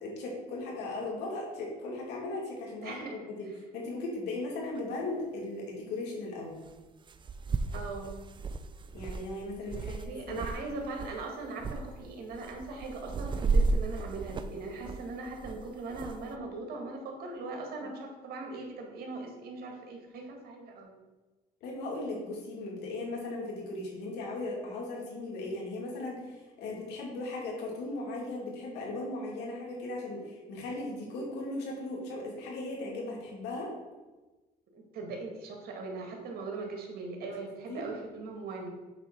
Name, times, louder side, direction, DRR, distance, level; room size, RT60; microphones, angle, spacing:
voice 1, 0.0-3.1 3.4-3.5 3.7-6.6 8.9-10.4 21.6-33.7 37.7-37.8, left 2 dB, 85° left, -3 dB, 2.7 m, -37 dB
voice 2, 2.8-3.5 7.7-8.2 9.9-21.0 34.7-38.7, right 3 dB, 65° right, 2 dB, 1.9 m, -40 dB
sound 1, 4.8-4.9 6.7-6.8 7.1-10.6 10.9-11.2 11.6-11.8 12.3-16.2, right 3 dB, 30° right, 0.5 m, -33 dB
8.0 x 3.8 x 6.0 m, 1.2 s
cardioid pair, 110°, 17 cm